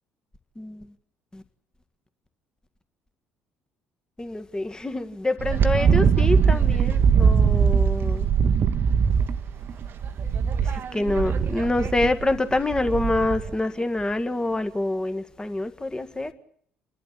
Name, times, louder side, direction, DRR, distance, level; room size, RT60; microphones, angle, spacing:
voice 1, 0.6-0.9 1.3-1.4 4.2-8.3 10.6-16.3, left 2 dB, 15° left, 9 dB, 1.7 m, -26 dB
Wind, 5.4-13.5, right 6 dB, 45° right, 1.0 m, -21 dB
29.5 x 11.5 x 9.6 m, 0.66 s
figure-of-eight pair, 50°, 5 cm